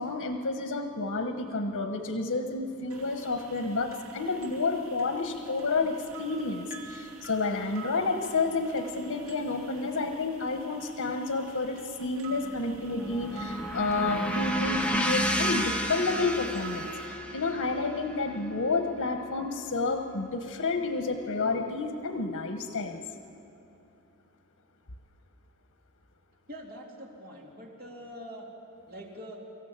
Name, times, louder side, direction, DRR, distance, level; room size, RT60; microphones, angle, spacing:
voice 1, 0.0-23.0, left 3 dB, 90° left, 5 dB, 1.2 m, -30 dB
sound 1, 2.9-17.1, right 4 dB, 70° right, 2.7 m, -47 dB
sound 2, 12.3-20.5, equal, 5° left, 1.0 m, -32 dB
voice 2, 26.5-28.5 28.9-29.4, equal, 45° right, -1 dB, 3.3 m, -44 dB
24.5 x 14.5 x 8.9 m, 2.9 s
head